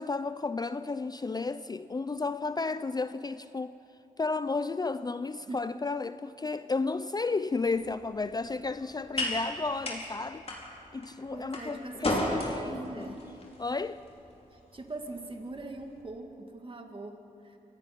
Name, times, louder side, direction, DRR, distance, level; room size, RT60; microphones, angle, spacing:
voice 1, 0.0-3.8 4.2-10.4 10.9-13.1 13.6-14.0, left 3 dB, 25° left, 0.4 m, -33 dB
sound 1, 7.6-16.0, left 1 dB, 45° left, 4.6 m, -37 dB
voice 2, 11.3-13.3 14.5-17.6, right 2 dB, 35° right, 2.1 m, -42 dB
25.5 x 18.0 x 5.9 m
wide cardioid pair, 90°, 15 cm